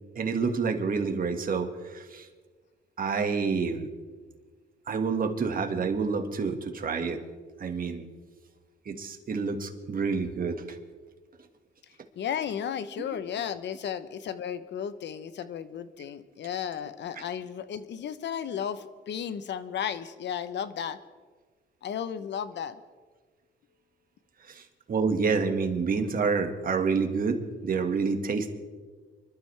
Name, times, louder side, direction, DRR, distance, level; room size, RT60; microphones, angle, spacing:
voice 1, 0.2-2.3 3.0-3.9 4.9-7.2 7.6-8.1 8.9-10.6 13.0-13.1 24.5-24.6 24.9-28.5, right 5 dB, 45° right, 5 dB, 1.9 m, -28 dB
voice 2, 12.2-21.0 21.8-22.8, left 8 dB, 65° left, 13 dB, 0.9 m, -34 dB
25.5 x 12.5 x 3.4 m, 1.4 s
cardioid pair, 90°, 20 cm